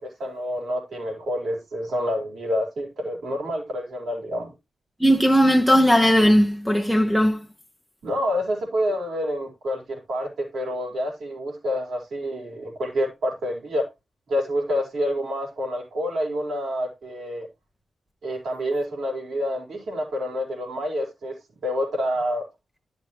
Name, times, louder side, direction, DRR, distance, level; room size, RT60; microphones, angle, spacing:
voice 1, 0.0-4.5 8.0-13.9 14.3-17.5 18.2-21.4 21.6-22.4, equal, 80° right, 5.1 m, -28 dB
voice 2, 5.0-7.5, equal, ahead, 1.0 m, -18 dB
12.5 x 6.6 x 3.1 m
wide cardioid pair, 140°, 0 cm